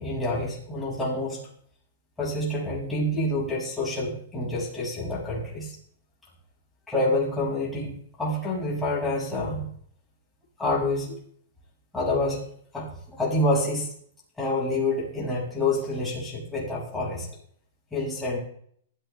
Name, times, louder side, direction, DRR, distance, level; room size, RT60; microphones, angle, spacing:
voice 1, 0.0-1.4 2.2-5.7 6.9-7.9 8.2-9.6 10.6-11.1 11.9-12.4 12.7-13.9 14.4-17.3 17.9-18.4, left 2 dB, 5° left, -6 dB, 6.0 m, -27 dB
22.5 x 14.0 x 2.3 m, 0.62 s
hypercardioid pair, 160°, 0 cm